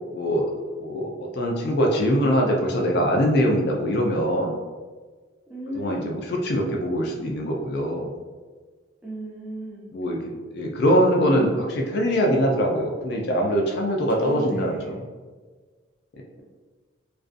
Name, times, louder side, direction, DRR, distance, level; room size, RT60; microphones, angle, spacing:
voice 1, 0.1-0.5 0.8-4.5 5.7-8.1 9.9-10.2 10.5-15.0, equal, 55° left, 0 dB, 0.4 m, -23 dB
voice 2, 5.5-6.2 9.0-9.9 14.2-15.0, right 1 dB, 5° right, -5 dB, 0.4 m, -35 dB
2.5 x 2.2 x 2.4 m, 1.4 s
head